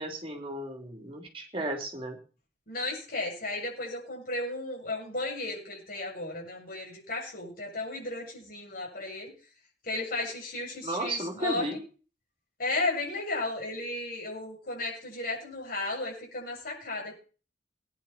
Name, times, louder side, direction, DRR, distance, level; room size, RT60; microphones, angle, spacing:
voice 1, 0.0-2.2 10.8-11.8, right 1 dB, 30° right, 3 dB, 3.2 m, -34 dB
voice 2, 2.7-9.3 9.8-11.8 12.6-17.2, left 2 dB, 55° left, -2 dB, 7.6 m, -34 dB
19.0 x 10.5 x 4.4 m, 0.38 s
head